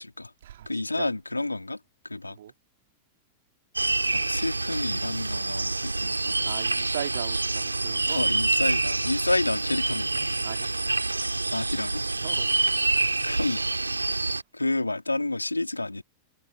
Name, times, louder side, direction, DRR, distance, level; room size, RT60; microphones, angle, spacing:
voice 1, 0.0-0.3 0.7-1.8 2.1-2.4 4.1-6.5 8.1-10.3 11.5-12.0 13.2-13.6 14.5-16.0, left 2 dB, 85° left, 2.5 m, -29 dB
sound 1, 3.8-14.4, right 2 dB, 80° right, 3.4 m, -27 dB
voice 2, 6.5-8.2 10.4-10.7 12.2-12.5, right 11 dB, 60° right, 2.5 m, -37 dB
figure-of-eight pair, 90°, 0 cm